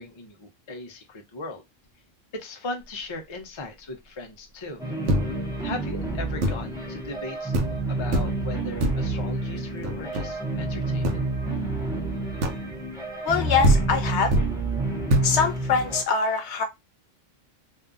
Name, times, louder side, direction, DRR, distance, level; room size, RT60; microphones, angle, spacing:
voice 1, 0.0-1.6 2.3-4.8 5.6-7.5 7.9-11.2, left 2 dB, 45° left, 0.3 m, -38 dB
sound 1, 4.8-16.0, right 2 dB, 5° right, 0.6 m, -29 dB
sound 2, 5.1-5.6 6.4-6.8 7.2-7.3 7.5-7.8 8.1-8.5 8.8-9.2 9.8-10.5 11.0-11.3 12.4-12.8 13.4-13.5 13.6-14.6 15.1-15.4, right 1 dB, 70° right, 0.9 m, -24 dB
voice 2, 13.2-14.3 15.2-16.6, left 5 dB, 65° left, 0.9 m, -23 dB
2.6 x 2.3 x 2.3 m
omnidirectional pair, 1.3 m